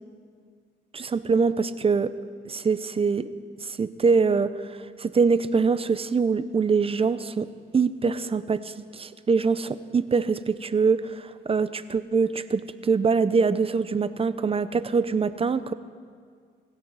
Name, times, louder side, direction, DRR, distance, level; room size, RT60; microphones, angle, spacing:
voice 1, 0.9-2.1 2.5-3.3 3.6-7.5 7.7-15.7, right 5 dB, 30° right, 13 dB, 0.7 m, -24 dB
24.5 x 13.5 x 4.1 m, 2.1 s
cardioid pair, 90°, 20 cm